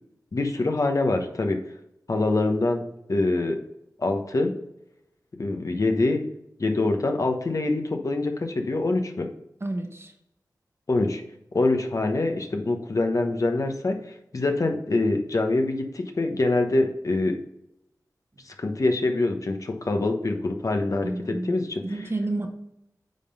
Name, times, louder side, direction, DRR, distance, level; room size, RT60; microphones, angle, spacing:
voice 1, 0.3-1.6 2.1-2.8 3.1-3.6 4.0-4.5 5.4-6.2 6.6-9.3 10.9-11.2 11.5-17.4 18.4-21.8, left 2 dB, 55° left, 4 dB, 1.1 m, -25 dB
voice 2, 9.6-10.1 21.0-21.6 21.8-22.5, right 2 dB, 35° right, 4 dB, 1.0 m, -30 dB
9.1 x 3.8 x 5.3 m, 0.82 s
wide cardioid pair, 80°, 7 cm